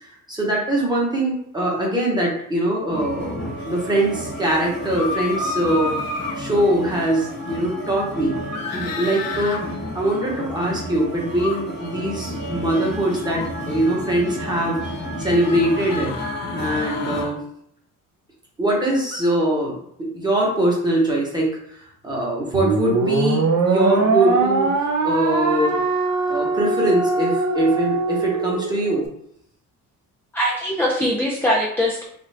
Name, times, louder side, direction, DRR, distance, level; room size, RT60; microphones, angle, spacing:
voice 1, 0.0-5.9 6.3-8.4 8.7-9.6 9.9-16.2 16.5-17.4 18.6-24.7 25.0-25.8 26.3-29.1, right 1 dB, 10° right, -3 dB, 0.9 m, -22 dB
sound 1, 2.9-17.2, equal, 30° left, 0.8 m, -32 dB
sound 2, 4.8-6.4 8.5-9.6 11.3-11.6 13.2-13.5 15.4-17.3 19.1-19.2, left 4 dB, 75° left, 0.8 m, -30 dB
sound 3, 22.5-29.1, right 3 dB, 55° right, 0.7 m, -21 dB
voice 2, 30.3-32.0, equal, 5° left, -3 dB, 0.4 m, -21 dB
3.5 x 2.6 x 3.2 m, 0.70 s
cardioid pair, 155°, 34 cm